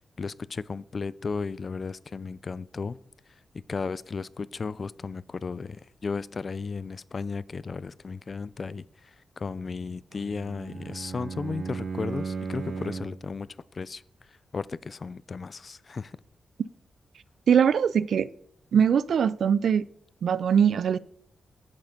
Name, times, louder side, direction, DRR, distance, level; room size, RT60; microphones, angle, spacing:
voice 1, 0.2-3.0 3.7-8.9 9.4-13.5 13.7-14.0 14.5-16.1, left 4 dB, 45° left, 0.3 m, -34 dB
Bowed string instrument, 10.1-13.3, right 4 dB, 55° right, 0.8 m, -35 dB
voice 2, 17.5-18.3 18.7-19.8 20.2-21.0, right 7 dB, 75° right, 0.3 m, -21 dB
7.6 x 7.3 x 5.2 m
wide cardioid pair, 105°, 0 cm